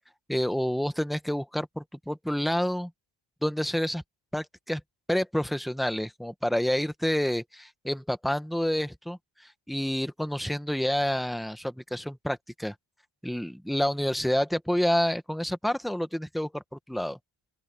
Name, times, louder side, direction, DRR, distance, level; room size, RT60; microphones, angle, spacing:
voice 1, 0.3-2.9 3.4-4.0 4.3-4.8 5.1-9.2 9.7-12.7 13.2-16.6 16.9-17.2, equal, ahead, 1.0 m, -28 dB
open air
wide cardioid pair, 165°, 46 cm